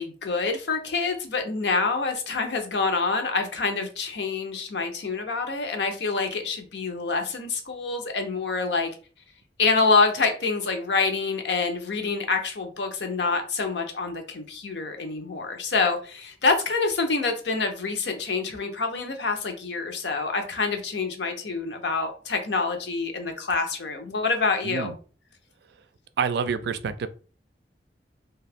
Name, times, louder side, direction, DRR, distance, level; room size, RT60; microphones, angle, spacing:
voice 1, 0.0-8.9 9.6-24.9, left 4 dB, 75° left, 0.7 m, -26 dB
voice 2, 24.6-25.0 26.2-27.1, right 6 dB, 65° right, 0.3 m, -27 dB
2.7 x 2.3 x 3.4 m
head